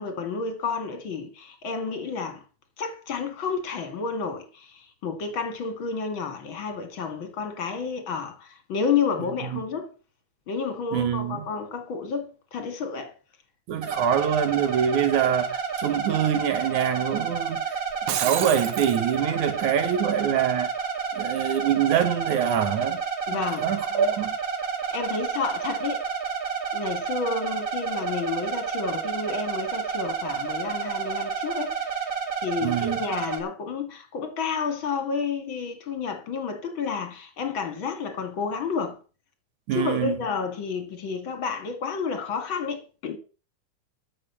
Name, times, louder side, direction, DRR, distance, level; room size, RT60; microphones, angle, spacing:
voice 1, 0.0-2.4 2.8-9.9 10.5-13.1 23.3-24.1 24.9-26.0 26.7-32.1 32.4-39.0 39.7-43.2, left 5 dB, 40° left, 2.7 m, -30 dB
voice 2, 10.9-11.5 13.7-17.6 18.1-20.7 21.1-23.0 23.6-24.4 32.6-33.0 39.7-40.2, right 9 dB, 70° right, 2.9 m, -25 dB
sound 1, 13.8-33.4, right 6 dB, 35° right, 1.8 m, -30 dB
Shatter, 17.9-19.0, right 12 dB, 85° right, 1.2 m, -30 dB
13.5 x 6.9 x 7.0 m
omnidirectional pair, 3.6 m